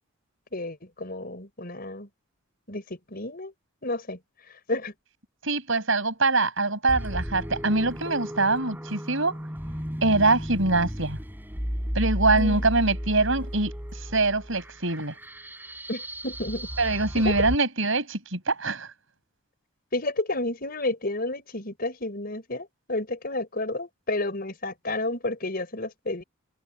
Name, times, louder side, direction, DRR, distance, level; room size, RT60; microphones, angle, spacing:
voice 1, 0.5-2.1 2.7-3.5 3.8-4.2 4.7-4.9 12.3-12.6 15.9-16.7 17.2-17.5 19.9-26.2, left 2 dB, 45° left, 5.2 m, -31 dB
voice 2, 5.4-9.4 10.0-11.2 11.9-13.7 14.1-15.1 16.8-18.9, right 3 dB, 65° right, 6.3 m, -24 dB
sound 1, 6.9-17.6, equal, 10° right, 4.9 m, -34 dB
head